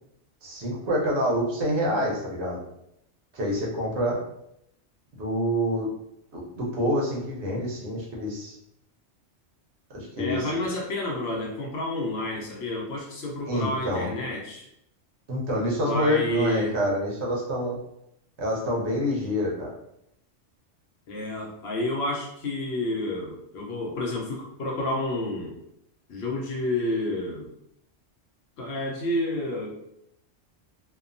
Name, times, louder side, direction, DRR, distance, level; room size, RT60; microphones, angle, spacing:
voice 1, 0.4-2.6 3.3-4.2 5.2-5.9 6.3-8.5 9.9-10.5 13.5-14.1 15.3-17.8 18.4-19.7, equal, 70° right, -3 dB, 1.1 m, -27 dB
voice 2, 10.2-14.7 15.8-16.8 21.1-25.6 26.1-27.5 28.6-29.9, left 1 dB, 65° left, -1 dB, 0.9 m, -30 dB
2.8 x 2.2 x 2.5 m, 0.77 s
omnidirectional pair, 1.2 m